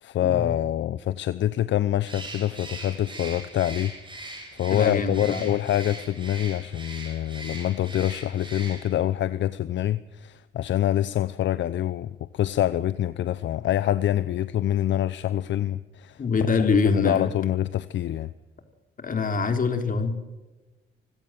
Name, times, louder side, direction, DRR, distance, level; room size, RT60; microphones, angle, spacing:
voice 1, 0.0-16.2 16.8-18.3, left 12 dB, 70° left, 15 dB, 0.8 m, -26 dB
Bird, 2.0-9.1, right 2 dB, 25° right, 7.7 m, -41 dB
voice 2, 4.7-5.4 16.2-17.3 19.0-20.1, left 4 dB, 45° left, 6 dB, 3.9 m, -24 dB
25.5 x 16.5 x 7.8 m, 1.2 s
cardioid pair, 90°, 20 cm